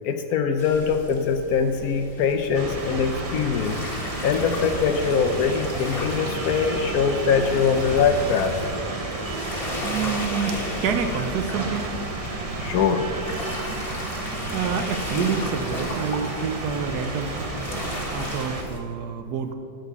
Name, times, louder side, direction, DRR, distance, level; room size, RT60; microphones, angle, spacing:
voice 1, 0.0-3.8 4.2-8.5 12.6-13.1, left 6 dB, 65° left, 7 dB, 1.1 m, -22 dB
sound 1, 0.6-18.8, left 2 dB, 35° left, 1.5 m, -35 dB
sound 2, 2.5-18.6, right 3 dB, 35° right, 0.6 m, -32 dB
sound 3, 9.7-16.0, right 1 dB, 10° right, 1.1 m, -41 dB
voice 2, 9.8-11.9 14.5-17.5 18.1-19.5, right 6 dB, 75° right, 7 dB, 1.3 m, -28 dB
12.5 x 4.7 x 6.9 m, 2.3 s
omnidirectional pair, 1.8 m